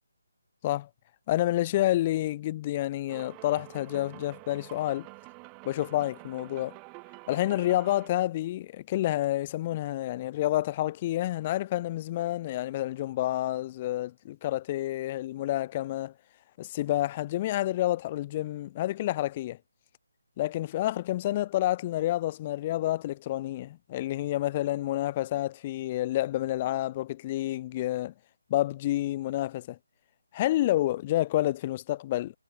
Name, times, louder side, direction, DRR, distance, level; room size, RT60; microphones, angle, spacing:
voice 1, 1.3-5.1 5.6-6.8 7.3-16.1 16.6-19.6 20.4-28.1 28.5-29.8 30.3-32.3, left 14 dB, 25° left, 7.6 m, -29 dB
sound 1, 3.1-8.1, right 35 dB, 15° right, 7.4 m, -48 dB
figure-of-eight pair, 145°, 0 cm